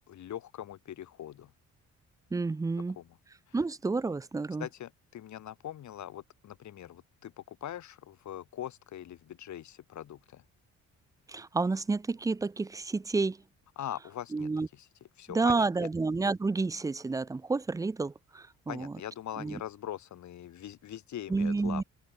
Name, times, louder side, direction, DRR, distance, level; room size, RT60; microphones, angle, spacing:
voice 1, 0.1-1.5 2.9-3.2 3.5-3.6 4.6-10.4 13.8-14.9 15.2-15.9 18.7-21.8, left 11 dB, 70° left, 3.2 m, -42 dB
voice 2, 2.3-3.0 3.5-4.7 11.3-13.4 14.3-14.7 15.3-18.9 19.4-19.6 21.3-21.8, right 3 dB, 10° right, 0.4 m, -30 dB
open air
cardioid pair, 90°, 30 cm